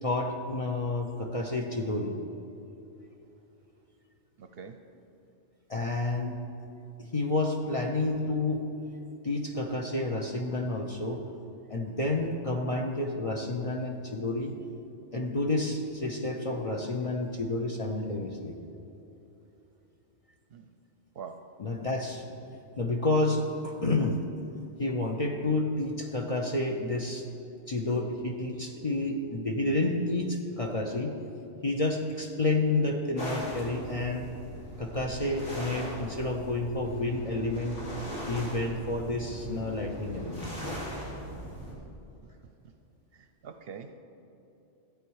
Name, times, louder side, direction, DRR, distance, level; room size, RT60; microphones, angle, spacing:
voice 1, 0.0-2.1 5.7-6.4 7.0-8.7 9.2-11.2 11.7-14.6 15.1-18.5 21.6-22.2 22.8-24.2 24.8-27.2 27.7-31.2 31.6-34.3 34.8-37.8 38.3-40.5, left 2 dB, 35° left, 2 dB, 0.7 m, -30 dB
voice 2, 4.4-4.7 20.5-20.7 21.2-21.3 43.4-44.0, right 6 dB, 60° right, 7 dB, 0.7 m, -43 dB
sound 1, 33.2-41.7, equal, 85° left, 2.7 m, -39 dB
13.5 x 8.4 x 4.7 m, 2.9 s
omnidirectional pair, 1.2 m